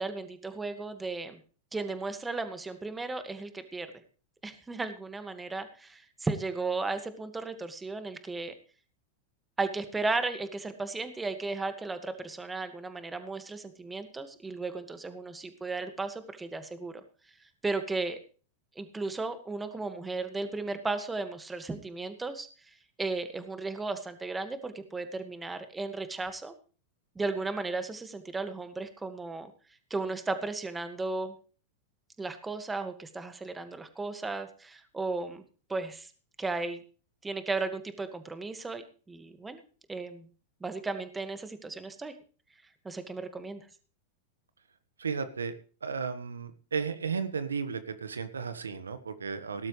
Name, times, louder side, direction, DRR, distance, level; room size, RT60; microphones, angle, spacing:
voice 1, 0.0-1.4 1.7-3.9 4.4-8.5 9.6-17.0 17.6-18.2 18.8-26.5 27.2-29.5 29.9-31.3 32.2-35.4 35.7-36.1 36.4-36.8 37.2-39.6 39.9-40.3 40.6-42.1 42.8-43.7, right 3 dB, 15° right, 9 dB, 1.8 m, -35 dB
voice 2, 45.0-45.5 45.8-49.7, right 5 dB, 85° right, 11 dB, 1.4 m, -34 dB
18.0 x 12.0 x 3.3 m, 0.40 s
hypercardioid pair, 95°, 0 cm